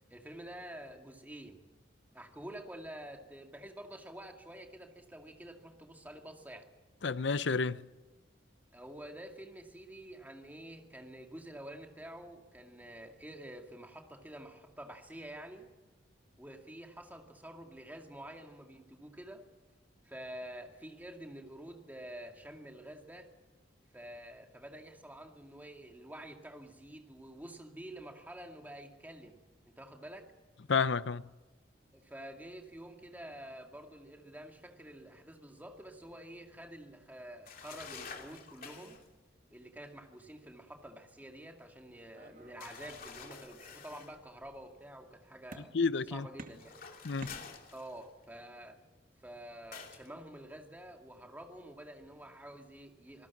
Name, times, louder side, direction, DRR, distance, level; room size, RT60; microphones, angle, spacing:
voice 1, 0.1-1.6 2.1-6.7 8.7-15.7 16.4-19.5 20.0-23.3 23.9-30.3 31.9-39.0 39.5-45.7 46.1-46.8 47.7-48.8 49.2-53.3, right 1 dB, 10° right, 2.3 m, -48 dB
voice 2, 7.0-7.9 30.7-31.2 45.7-46.3 47.0-47.4, left 5 dB, 70° left, 0.7 m, -30 dB
sound 1, 37.5-39.1 42.6-44.2 46.5-48.2 49.7-50.1, left 6 dB, 50° left, 2.9 m, -48 dB
sound 2, 42.1-43.5 43.8-44.6 45.5-46.0 46.4-48.0, right 2 dB, 50° right, 2.1 m, -52 dB
26.0 x 19.0 x 7.3 m
head